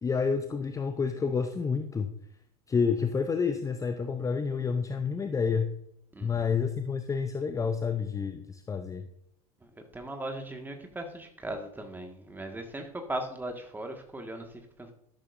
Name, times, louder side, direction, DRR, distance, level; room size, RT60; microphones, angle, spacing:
voice 1, 0.0-2.1 2.7-5.7 6.2-9.0, left 5 dB, 15° left, 8 dB, 0.7 m, -29 dB
voice 2, 6.1-6.5 9.6-14.9, right 1 dB, 10° right, 4 dB, 1.8 m, -38 dB
12.0 x 11.5 x 2.6 m, 0.74 s
figure-of-eight pair, 75°, 20 cm